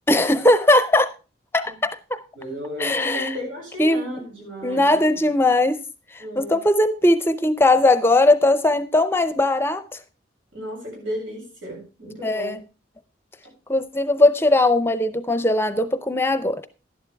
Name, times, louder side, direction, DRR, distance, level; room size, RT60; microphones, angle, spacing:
voice 1, 0.1-1.1 1.5-2.2 2.8-3.3 3.8-4.2 4.6-5.8 6.1-9.8 12.2-12.6 13.7-16.6, left 2 dB, 10° left, 0.6 m, -19 dB
voice 2, 2.4-5.2 6.2-6.6 10.5-12.6, equal, 90° right, 7.6 m, -34 dB
12.0 x 11.0 x 3.4 m
head